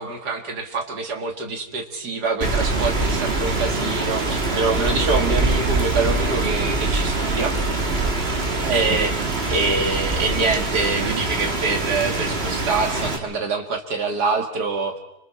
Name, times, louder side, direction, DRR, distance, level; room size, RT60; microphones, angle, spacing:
voice 1, 0.0-7.5 8.6-15.0, right 3 dB, 75° right, 5 dB, 2.7 m, -25 dB
Rain, 2.4-13.2, right 2 dB, 40° right, 2.1 m, -23 dB
28.5 x 26.0 x 4.3 m, 0.81 s
omnidirectional pair, 1.7 m